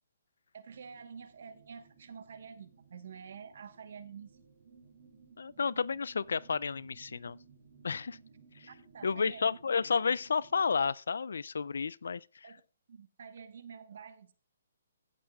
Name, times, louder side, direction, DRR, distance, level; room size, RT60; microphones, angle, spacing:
voice 1, 0.5-4.3 8.9-9.6 12.4-12.6 12.9-14.3, right 6 dB, 65° right, 1.2 m, -48 dB
sound 1, 0.7-10.9, right 5 dB, 45° right, 4.3 m, -59 dB
voice 2, 5.4-7.4 7.8-8.2 8.6-8.7 9.0-12.5, left 5 dB, 80° left, 0.3 m, -31 dB
16.0 x 8.3 x 2.4 m
hypercardioid pair, 155°, 0 cm